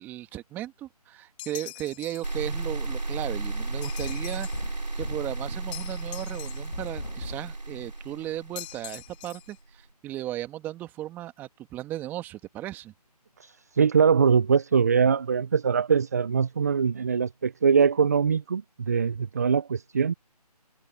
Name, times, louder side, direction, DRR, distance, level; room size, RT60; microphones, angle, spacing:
voice 1, 0.0-12.9, right 14 dB, 10° right, 1.5 m, -36 dB
sound 1, 1.4-2.4 3.8-4.7 5.7-6.9 8.6-9.6, left 20 dB, 15° left, 1.2 m, -43 dB
sound 2, 2.2-9.4, right 2 dB, 90° right, 3.2 m, -34 dB
sound 3, 4.0-5.4 6.7-7.6, left 3 dB, 80° left, 2.1 m, -40 dB
voice 2, 13.4-20.1, right 6 dB, 25° right, 0.5 m, -22 dB
figure-of-eight pair, 155°, 21 cm